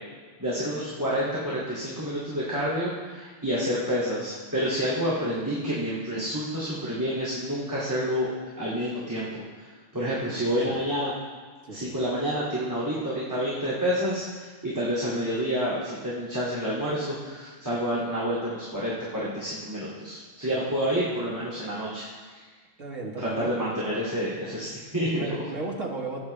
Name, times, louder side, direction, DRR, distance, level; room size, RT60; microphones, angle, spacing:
voice 1, 0.4-8.3 8.6-9.4 9.9-11.1 11.7-22.4 23.2-25.3, equal, 15° right, -9 dB, 2.3 m, -29 dB
voice 2, 22.8-23.5 25.1-26.2, right 2 dB, 85° right, 0 dB, 2.0 m, -34 dB
17.0 x 9.1 x 3.2 m, 1.5 s
omnidirectional pair, 1.3 m